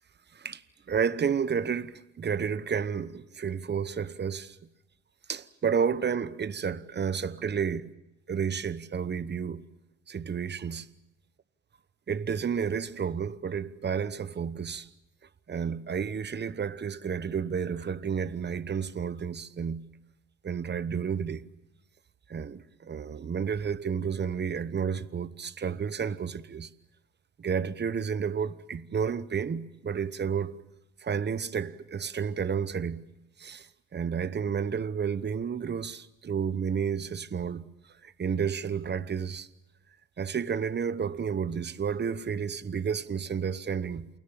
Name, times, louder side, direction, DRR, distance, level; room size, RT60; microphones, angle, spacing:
voice 1, 0.9-4.6 5.3-7.8 8.3-9.6 10.1-10.9 12.1-14.9 15.5-19.9 20.4-21.4 22.3-26.7 27.4-30.6 31.0-33.0 33.4-37.7 38.0-39.5 40.2-44.1, right 7 dB, 35° right, 1.0 m, -31 dB
28.5 x 21.0 x 7.2 m
cardioid pair, 90°, 30 cm